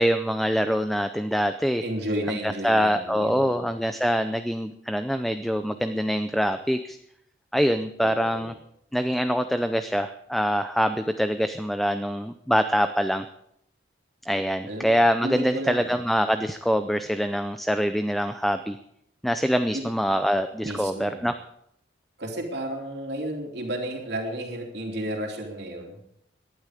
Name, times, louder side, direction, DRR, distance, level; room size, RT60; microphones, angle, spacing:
voice 1, 0.0-1.8 2.3-7.0 7.5-8.5 8.9-13.3 14.3-18.8 19.2-21.3, equal, ahead, 9 dB, 0.5 m, -24 dB
voice 2, 1.8-3.6 8.0-8.5 14.7-16.0 19.7-19.8 20.6-21.2 22.2-26.0, right 1 dB, 60° right, 1 dB, 3.2 m, -32 dB
18.0 x 11.5 x 5.1 m, 0.74 s
head